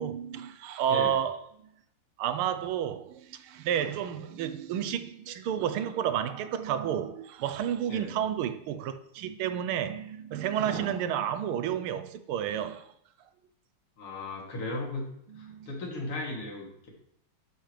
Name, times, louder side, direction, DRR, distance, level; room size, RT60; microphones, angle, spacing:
voice 1, 0.0-1.4 2.2-12.9 15.4-15.7, right 9 dB, 80° right, 1.6 m, -31 dB
voice 2, 14.0-15.1 15.4-16.9, left 2 dB, 75° left, 3.5 m, -36 dB
11.5 x 11.5 x 3.2 m
omnidirectional pair, 2.4 m